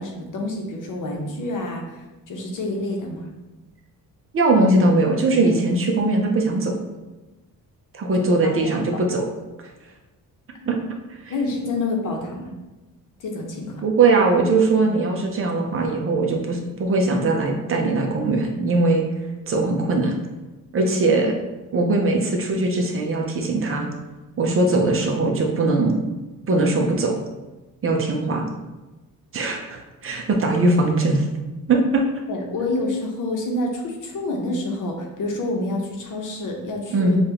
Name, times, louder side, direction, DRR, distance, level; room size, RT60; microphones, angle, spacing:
voice 1, 0.0-3.3 8.2-8.8 10.6-10.7 11.3-12.5 13.2-13.8 32.3-37.2, left 2 dB, 60° left, 1 dB, 0.9 m, -28 dB
voice 2, 4.3-6.7 7.9-9.2 10.7-10.8 11.2-11.3 13.8-19.0 19.5-20.2 20.7-21.3 21.7-23.9 24.4-26.0 26.5-27.2 27.8-28.5 29.3-31.2 31.7-32.0 36.9-37.2, right 2 dB, 40° right, 1 dB, 0.6 m, -20 dB
6.8 x 2.4 x 2.9 m, 1.1 s
cardioid pair, 160°, 35 cm